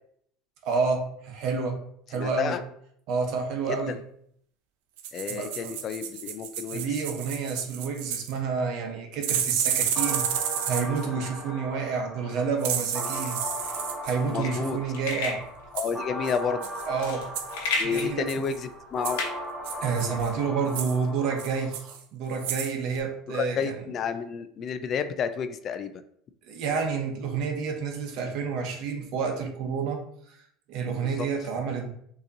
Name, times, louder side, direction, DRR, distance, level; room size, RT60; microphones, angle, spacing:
voice 1, 0.6-1.8 2.1-2.6 3.1-4.0 5.3-5.7 6.7-10.2 10.6-13.4 14.0-15.4 16.9-17.3 17.8-18.4 19.8-23.8 26.5-30.0 30.3-30.4 30.7-31.9, right 5 dB, 65° right, 4 dB, 0.9 m, -29 dB
voice 2, 2.1-2.6 5.1-6.9 14.2-14.8 15.7-16.7 17.8-19.2 23.3-26.0 31.0-31.3, left 6 dB, 45° left, 10 dB, 0.4 m, -31 dB
sound 1, 5.0-8.3 9.2-11.0 12.6-14.2 15.8-15.9 16.3-16.4 16.6-16.9 17.3-17.6 17.9-18.6 19.0-19.2 19.7-20.3 20.7-21.0 21.4-22.0 22.3-22.7 23.0-23.1, right 9 dB, 80° right, 0.5 m, -31 dB
sound 2, 10.0-22.0, equal, 5° right, 1.1 m, -38 dB
sound 3, 13.1-20.3, left 3 dB, 85° left, 1.0 m, -35 dB
6.3 x 2.9 x 2.7 m, 0.67 s
supercardioid pair, 105°, 0 cm